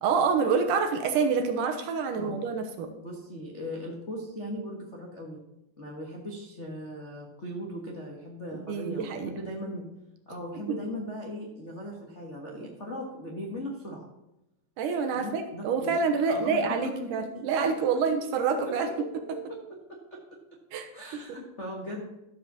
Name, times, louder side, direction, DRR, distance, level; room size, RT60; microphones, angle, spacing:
voice 1, 0.0-2.9 8.5-9.3 10.5-10.7 14.8-18.9 20.7-21.2, right 5 dB, 75° right, 5 dB, 2.4 m, -27 dB
voice 2, 3.0-5.4 5.8-9.9 10.3-14.0 15.1-15.9 16.3-17.5 18.6-18.9 19.3-19.6 20.1-20.2 20.9-22.0, equal, 60° left, -3 dB, 0.7 m, -38 dB
13.5 x 5.2 x 6.8 m, 0.88 s
omnidirectional pair, 4.0 m